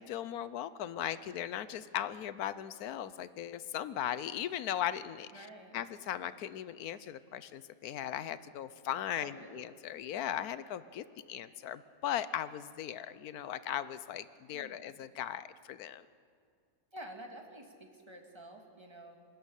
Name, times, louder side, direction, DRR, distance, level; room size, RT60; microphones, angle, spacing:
voice 1, 0.0-5.5 5.7-16.1, left 11 dB, 90° left, 15 dB, 1.2 m, -38 dB
voice 2, 5.3-5.8 9.1-9.6 14.5-14.9 16.9-19.2, right 1 dB, 20° right, 3 dB, 2.2 m, -50 dB
24.5 x 13.5 x 9.9 m, 2.2 s
omnidirectional pair, 1.5 m